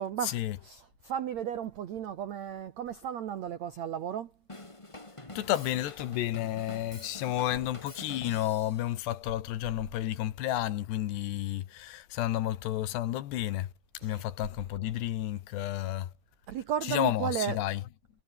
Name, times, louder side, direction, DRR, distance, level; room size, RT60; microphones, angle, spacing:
voice 1, 0.0-4.3 14.0-14.2 16.5-17.6, right 9 dB, 75° right, 1.6 m, -34 dB
Drum kit / Drum, 4.5-8.9, left 2 dB, 10° left, 1.5 m, -46 dB
voice 2, 5.4-13.7 14.0-16.1 16.9-17.8, left 13 dB, 80° left, 3.5 m, -31 dB
omnidirectional pair, 4.9 m